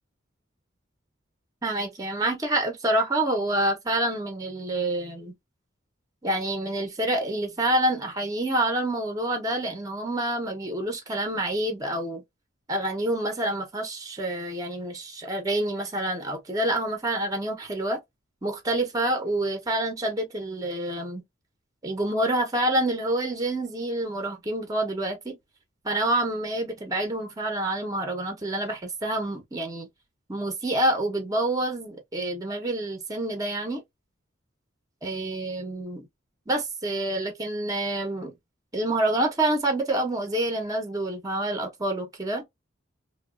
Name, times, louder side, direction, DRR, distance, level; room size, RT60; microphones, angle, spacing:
voice 1, 1.6-5.3 6.2-12.2 12.7-18.0 18.4-21.2 21.8-25.4 25.8-29.9 30.3-33.8 35.0-36.1 36.5-38.3 38.7-42.4, right 1 dB, 20° right, 0.6 m, -27 dB
3.0 x 2.2 x 2.3 m
head